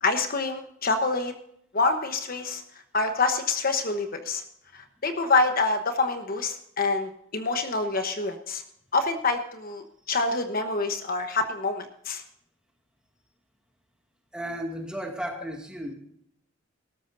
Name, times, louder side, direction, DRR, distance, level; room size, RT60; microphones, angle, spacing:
voice 1, 0.0-1.3 1.7-2.6 2.9-4.4 4.7-8.6 8.9-12.2, left 3 dB, 45° left, 7 dB, 1.1 m, -26 dB
voice 2, 14.3-15.9, equal, 5° right, 1 dB, 2.2 m, -34 dB
18.0 x 13.5 x 2.7 m, 0.71 s
head